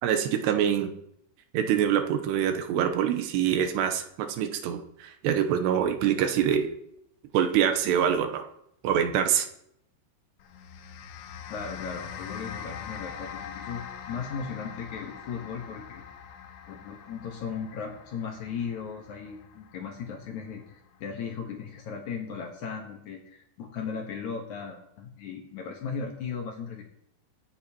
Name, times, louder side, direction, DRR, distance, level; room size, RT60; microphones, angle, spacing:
voice 1, 0.0-0.9 1.5-6.7 7.3-8.5 8.8-9.5, right 9 dB, 80° right, 6 dB, 2.8 m, -25 dB
sound 1, 10.4-20.9, left 8 dB, 90° left, 3.3 m, -43 dB
voice 2, 11.5-16.0 16.7-26.8, left 6 dB, 75° left, 2 dB, 1.8 m, -37 dB
23.0 x 8.6 x 2.9 m, 0.76 s
omnidirectional pair, 5.1 m